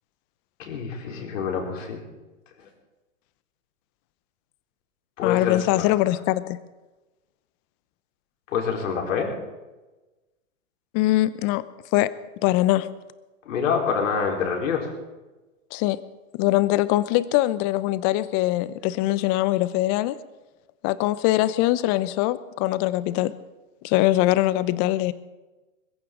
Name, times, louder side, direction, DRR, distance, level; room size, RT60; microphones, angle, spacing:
voice 1, 0.6-2.0 5.2-5.9 8.5-9.3 13.5-14.9, left 6 dB, 70° left, 1 dB, 4.2 m, -26 dB
voice 2, 5.2-6.6 10.9-11.6 11.9-12.1 12.4-12.9 15.7-16.0 16.3-20.2 20.8-23.3 23.8-25.1, left 16 dB, 35° left, 16 dB, 0.8 m, -22 dB
21.5 x 15.0 x 3.9 m, 1.2 s
hypercardioid pair, 125°, 40 cm